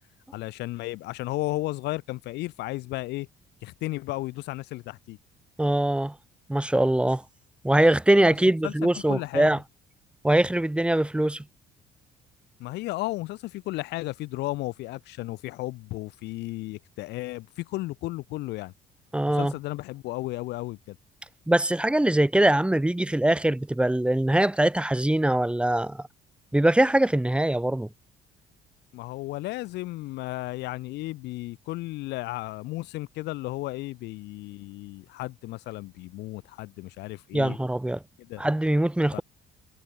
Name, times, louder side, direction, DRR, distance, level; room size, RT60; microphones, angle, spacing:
voice 1, 0.3-3.3 3.6-5.2 8.6-9.5 12.6-18.7 19.3-21.0 28.9-37.6 38.2-38.4 39.1-39.2, left 19 dB, 85° left, 4.0 m, -34 dB
voice 2, 5.6-6.1 6.5-7.2 7.6-9.6 10.2-11.4 19.1-19.5 21.5-26.0 26.5-27.9 37.3-38.0 38.4-39.2, right 1 dB, 5° right, 2.8 m, -22 dB
cardioid pair, 110°, 17 cm